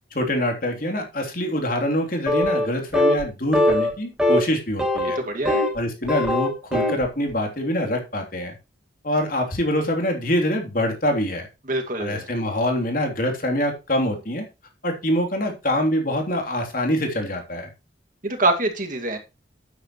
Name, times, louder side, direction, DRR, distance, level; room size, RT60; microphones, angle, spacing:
voice 1, 0.1-5.2 5.7-8.5 9.0-11.5 12.0-14.5 14.8-17.7, left 1 dB, 45° left, 3 dB, 3.3 m, -25 dB
sound 1, 2.3-2.7 2.9-3.2 3.5-3.9 4.2-4.4 4.8-5.8 6.0-7.0, left 1 dB, 5° right, 2.8 m, -21 dB
voice 2, 5.2-5.6 11.7-12.3 18.2-19.2, right 2 dB, 45° right, 4 dB, 2.2 m, -24 dB
12.0 x 9.5 x 3.2 m, 0.27 s
head